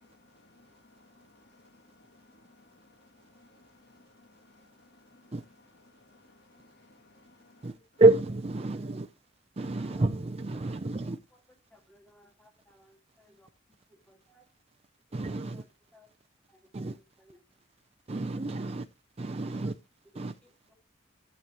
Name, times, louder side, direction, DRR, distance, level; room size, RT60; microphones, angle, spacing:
voice 1, 0.0-8.0 9.8-10.0, left 2 dB, 55° left, 1.5 m, -61 dB
voice 2, 8.0-9.1 9.6-11.2 15.1-15.6 16.7-17.0 18.1-18.9 19.2-19.7 20.1-20.3, right 3 dB, 30° right, 0.5 m, -27 dB
voice 3, 8.6-8.9 9.8-10.2 10.5-11.4 11.7-13.5 13.9-14.5 15.3-16.1 16.5-16.7 17.2-17.4 18.6-18.7 20.1-20.7, left 1 dB, 5° left, 2.1 m, -62 dB
13.5 x 8.4 x 3.0 m
head